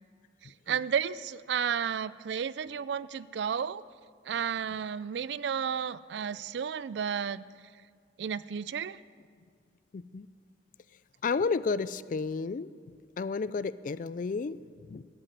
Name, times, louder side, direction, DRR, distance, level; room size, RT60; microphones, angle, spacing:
voice 1, 0.4-3.8 4.2-7.4 8.2-9.0, right 7 dB, 65° right, 18 dB, 0.3 m, -32 dB
voice 2, 9.9-10.3 11.2-12.7 13.2-15.0, left 4 dB, 45° left, 17 dB, 0.3 m, -32 dB
13.0 x 9.0 x 7.9 m, 2.1 s
head